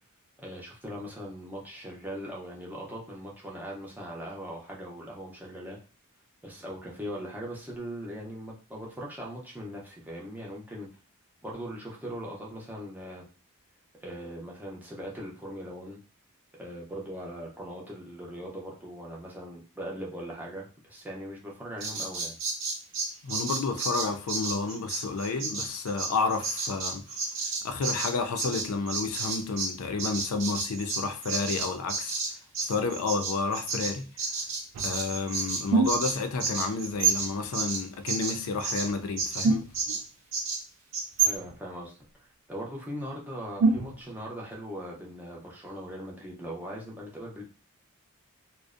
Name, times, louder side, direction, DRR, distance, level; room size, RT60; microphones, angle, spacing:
voice 1, 0.4-5.8 6.4-10.9 11.4-13.2 14.0-16.0 16.6-22.4 41.2-41.9 42.5-47.4, equal, 10° right, 0.5 m, -40 dB
Bird vocalization bird call bird song, 21.8-29.7 30.0-38.9 39.2-39.5 39.7-40.0 40.3-40.6 40.9-41.0, right 3 dB, 55° right, 0.7 m, -32 dB
voice 2, 23.2-27.3 27.6-32.2 32.6-34.1 34.8-39.7, left 4 dB, 70° left, 0.4 m, -30 dB
sound 1, 34.7-35.0 35.7-36.2 36.9-37.3 38.9-39.0 39.2-40.0 41.2-41.5 43.6-44.1, right 4 dB, 80° right, 0.3 m, -25 dB
2.5 x 2.0 x 2.4 m
head